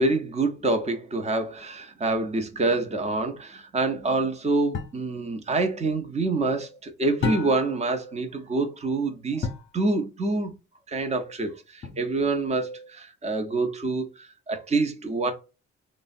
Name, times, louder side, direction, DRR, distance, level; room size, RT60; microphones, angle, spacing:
voice 1, 0.0-9.5 9.7-10.5 10.9-15.3, right 3 dB, 20° right, 0.7 m, -26 dB
sound 1, 4.7-5.1 7.2-7.8 9.4-9.8 11.8-12.4, left 4 dB, 40° left, 0.7 m, -31 dB
3.2 x 2.0 x 2.5 m
cardioid pair, 90°, 30 cm